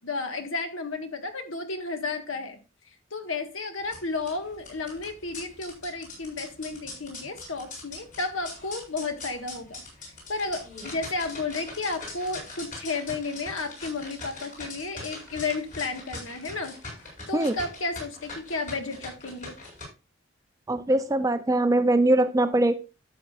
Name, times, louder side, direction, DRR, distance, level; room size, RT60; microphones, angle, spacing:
voice 1, 0.0-2.6 3.1-9.8 10.3-16.7 17.3-19.5, left 3 dB, 80° left, 1.5 m, -32 dB
sound 1, 3.8-19.8, left 2 dB, 40° left, 5.5 m, -42 dB
voice 2, 20.7-22.7, right 1 dB, 15° right, 0.4 m, -22 dB
12.5 x 7.2 x 2.4 m
head